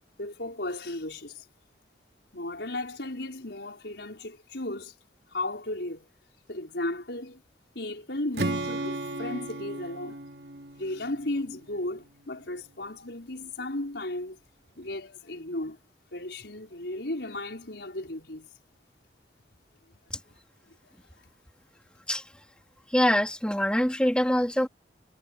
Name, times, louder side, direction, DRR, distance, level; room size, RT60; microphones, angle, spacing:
voice 1, 0.2-1.5 2.3-4.9 5.3-6.1 6.5-7.4 7.8-10.2 10.8-14.4 14.8-15.8 16.1-18.5 20.3-20.4, left 1 dB, 70° left, 5.2 m, -35 dB
Strum, 8.3-12.5, right 2 dB, 60° right, 3.4 m, -35 dB
voice 2, 22.9-24.7, equal, 5° left, 2.9 m, -24 dB
head